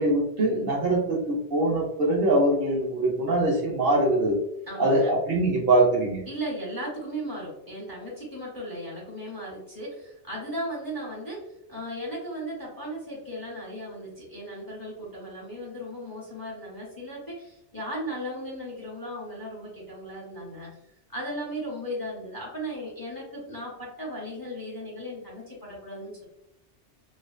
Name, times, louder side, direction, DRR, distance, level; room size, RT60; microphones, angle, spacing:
voice 1, 0.0-4.4 4.8-6.2, right 1 dB, 65° right, -1 dB, 0.7 m, -23 dB
voice 2, 4.7-5.2 6.3-20.8 21.1-26.2, equal, 25° left, -5 dB, 0.6 m, -36 dB
2.5 x 2.3 x 2.3 m, 0.80 s
omnidirectional pair, 1.2 m